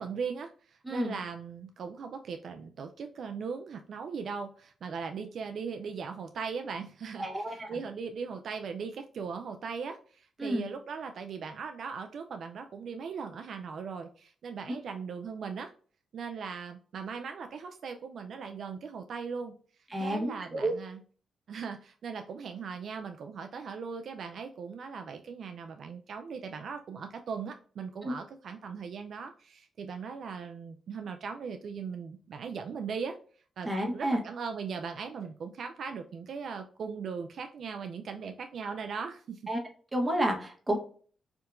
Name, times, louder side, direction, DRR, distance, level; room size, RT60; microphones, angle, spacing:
voice 1, 0.0-15.7 16.1-19.5 20.0-21.0 21.5-33.2 33.6-39.4, right 5 dB, 70° right, 5 dB, 0.3 m, -39 dB
voice 2, 0.8-1.2 7.2-7.7 10.4-10.7 19.9-20.7 28.0-28.1 33.6-34.2 39.5-39.6 39.9-40.8, right 1 dB, 20° right, 1 dB, 1.1 m, -30 dB
3.4 x 2.7 x 2.4 m, 0.43 s
cardioid pair, 65°, 0 cm